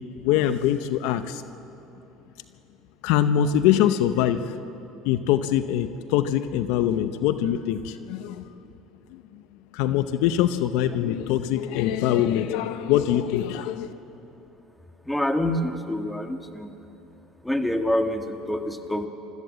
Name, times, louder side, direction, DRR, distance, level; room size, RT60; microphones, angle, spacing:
voice 1, 0.2-1.4 3.0-4.5 5.0-8.4 9.7-13.9, left 11 dB, 75° left, 11 dB, 0.7 m, -23 dB
voice 2, 15.1-16.7 17.4-19.1, left 1 dB, 5° left, 5 dB, 1.8 m, -26 dB
25.0 x 13.5 x 7.6 m, 2.9 s
supercardioid pair, 85°, 0 cm